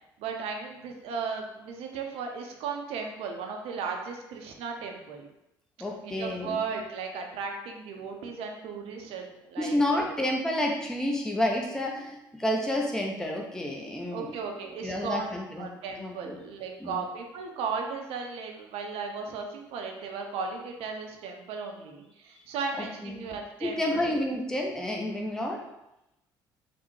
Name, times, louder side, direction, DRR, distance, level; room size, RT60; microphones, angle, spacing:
voice 1, 0.2-5.3 6.0-10.1 14.1-15.3 15.6-24.1, right 5 dB, 60° right, 3 dB, 0.5 m, -36 dB
voice 2, 5.8-6.6 9.6-14.3 14.8-15.7 16.0-16.4 16.8-17.0 22.8-23.3 23.6-25.6, left 1 dB, 5° left, -1 dB, 0.5 m, -30 dB
3.4 x 2.1 x 3.1 m, 0.90 s
hypercardioid pair, 50°, 11 cm